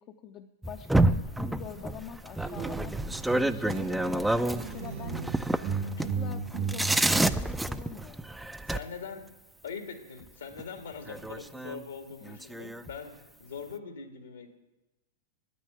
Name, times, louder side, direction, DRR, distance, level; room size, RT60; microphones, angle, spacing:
voice 1, 0.0-5.5 6.0-8.3 12.2-12.4, left 9 dB, 35° left, 5 dB, 0.7 m, -45 dB
sound 1, 0.6-8.8 10.6-10.7 11.1-11.8 12.3-12.9, right 1 dB, 5° right, 0.5 m, -29 dB
sound 2, 1.5-7.0, right 3 dB, 85° right, 0.8 m, -48 dB
sound 3, 2.5-4.2 4.5-7.4, right 5 dB, 35° right, 0.9 m, -35 dB
voice 2, 5.8-6.2 8.7-9.2 9.6-13.1 13.4-14.5, left 5 dB, 75° left, 5 dB, 1.9 m, -42 dB
9.7 x 9.4 x 9.2 m, 1.0 s
figure-of-eight pair, 100°, 0 cm